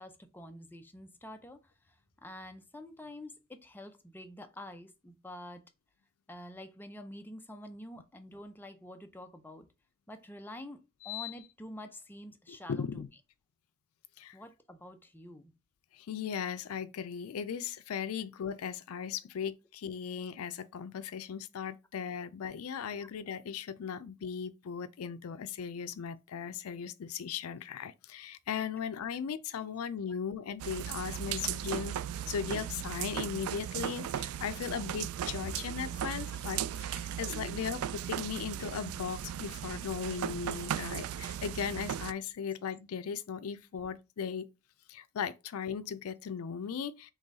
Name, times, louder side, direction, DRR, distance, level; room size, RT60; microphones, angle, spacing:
voice 1, 0.0-1.6 1.9-5.6 6.3-9.7 10.1-10.8 11.0-13.1 14.3-15.5 23.0-23.1 30.1-30.2 36.1-36.4, left 1 dB, 10° left, 0.5 m, -47 dB
voice 2, 11.0-11.3 12.5-13.1 14.2-14.4 15.9-32.0 32.3-44.5 44.9-47.1, left 7 dB, 85° left, 0.4 m, -37 dB
sound 1, 30.6-42.1, right 10 dB, 80° right, 0.3 m, -37 dB
3.8 x 3.1 x 4.0 m
head